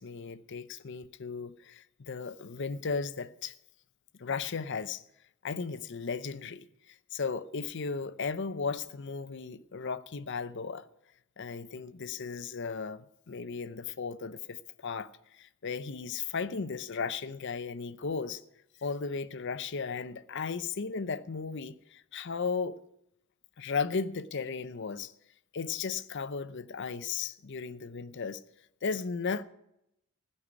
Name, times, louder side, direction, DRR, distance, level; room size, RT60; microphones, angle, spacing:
voice 1, 0.0-3.5 4.2-5.0 5.4-6.7 7.1-10.9 11.4-15.1 15.4-18.4 18.8-22.8 23.6-25.1 25.5-28.4 28.8-29.4, left 5 dB, 55° left, 0.7 m, -35 dB
16.5 x 5.6 x 9.7 m
head